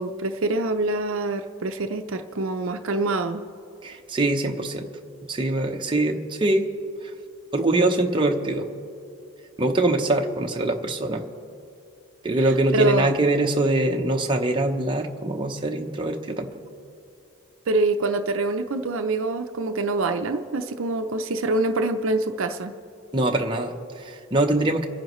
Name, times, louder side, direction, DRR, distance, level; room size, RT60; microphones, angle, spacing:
voice 1, 0.0-3.4 12.4-13.1 17.7-22.7, right 2 dB, 60° right, 6 dB, 0.6 m, -25 dB
voice 2, 3.8-4.9 5.2-6.7 7.5-8.7 9.6-11.3 12.2-16.5 23.1-24.9, right 2 dB, 20° right, 2 dB, 0.8 m, -23 dB
29.5 x 10.5 x 3.1 m, 2.6 s
head